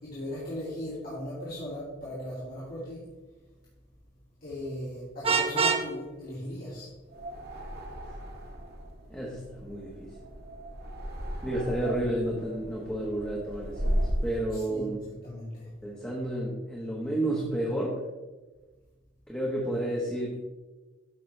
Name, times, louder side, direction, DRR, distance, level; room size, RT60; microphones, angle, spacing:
voice 1, 0.0-3.1 4.4-6.9 14.5-15.7, left 1 dB, 55° left, -9 dB, 2.6 m, -38 dB
Vehicle horn car horn honking, 5.2-5.9, right 5 dB, 30° right, 0.8 m, -24 dB
sound 1, 7.1-14.4, equal, 60° right, 1.4 m, -35 dB
voice 2, 9.1-10.1 11.4-15.1 15.8-18.0 19.3-20.3, right 1 dB, 5° left, -4 dB, 1.3 m, -31 dB
13.5 x 5.8 x 3.3 m, 1.2 s
head